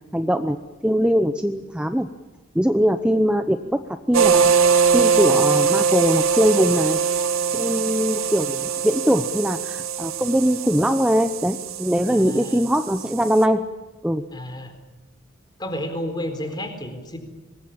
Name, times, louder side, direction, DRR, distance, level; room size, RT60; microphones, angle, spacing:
voice 1, 0.1-0.6 0.8-2.1 2.5-3.8 4.1-4.5 4.9-7.0 7.5-13.6 14.0-14.2, equal, 5° right, 8 dB, 0.8 m, -21 dB
sound 1, 4.1-13.4, right 6 dB, 85° right, 2.1 m, -22 dB
voice 2, 12.1-12.6 14.3-14.7 15.6-17.2, left 1 dB, 20° left, 7 dB, 4.1 m, -31 dB
25.5 x 21.0 x 8.7 m, 1.2 s
head